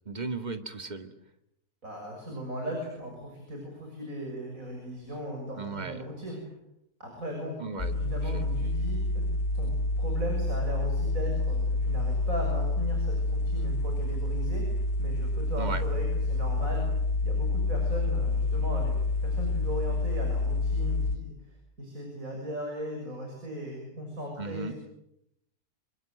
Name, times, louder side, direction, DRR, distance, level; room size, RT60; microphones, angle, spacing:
voice 1, 0.1-1.1 5.6-6.1 7.6-7.9 8.2-8.5 15.6-15.8 24.4-24.7, right 4 dB, 30° right, 7 dB, 2.0 m, -36 dB
voice 2, 1.8-6.4 7.0-7.5 7.9-9.3 9.5-9.7 10.0-16.9 17.2-18.9 19.2-21.3 21.8-24.7, equal, 60° right, 1 dB, 7.0 m, -37 dB
sound 1, 7.8-21.2, left 2 dB, 45° left, 1.6 m, -28 dB
27.5 x 25.0 x 7.8 m, 0.82 s
omnidirectional pair, 1.6 m